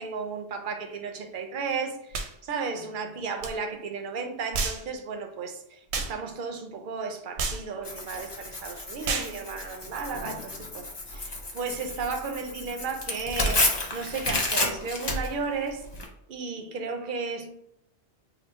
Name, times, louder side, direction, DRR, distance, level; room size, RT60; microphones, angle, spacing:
voice 1, 0.0-15.9 16.3-17.5, right 4 dB, 60° right, 0.6 m, -34 dB
sound 1, 2.1-2.3 3.4-3.5 4.5-4.8 5.9-6.1 7.4-7.6 9.0-9.3, right 4 dB, 85° right, 0.9 m, -29 dB
Tearing, 7.8-16.1, left 2 dB, 30° left, 0.5 m, -31 dB
3.8 x 2.0 x 4.1 m
omnidirectional pair, 1.1 m